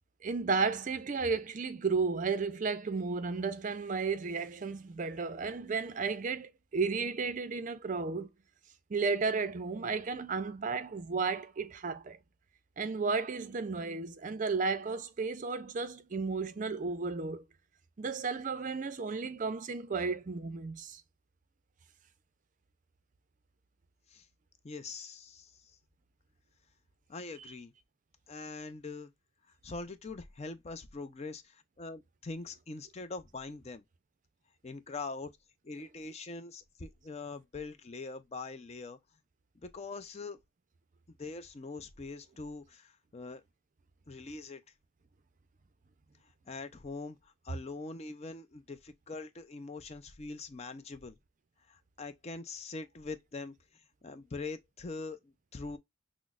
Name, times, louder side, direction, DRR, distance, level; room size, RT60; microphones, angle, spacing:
voice 1, 0.2-8.3 8.9-12.2 12.8-17.4 18.0-21.0, right 4 dB, 40° right, 0.4 m, -33 dB
voice 2, 24.6-25.8 27.1-27.7 28.3-29.1 29.6-33.8 34.6-35.3 35.6-39.0 39.6-40.4 41.2-43.4 44.1-44.6 46.5-51.2 51.7-55.8, left 3 dB, 30° left, 0.4 m, -43 dB
6.0 x 2.0 x 2.3 m
head